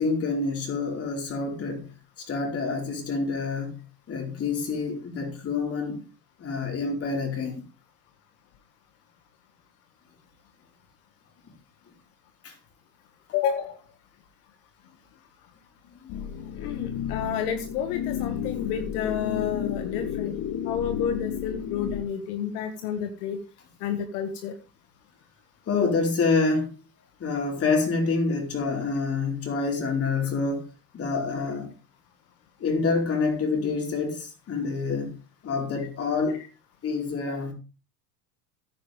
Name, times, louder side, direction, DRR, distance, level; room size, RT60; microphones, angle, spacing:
voice 1, 0.0-1.9 2.2-3.8 4.1-6.0 6.4-7.6 12.4-12.5 15.8-16.2 25.7-26.7 27.2-30.7 30.9-31.7 32.6-35.1 35.4-36.4 36.8-37.5, left 4 dB, 30° left, 4.6 m, -27 dB
voice 2, 13.3-13.8 16.6-20.4 20.6-23.4 23.8-24.5, left 8 dB, 70° left, 1.9 m, -30 dB
sound 1, 16.1-22.0, left 9 dB, 50° left, 2.0 m, -32 dB
15.0 x 10.0 x 3.5 m
supercardioid pair, 130°, 47 cm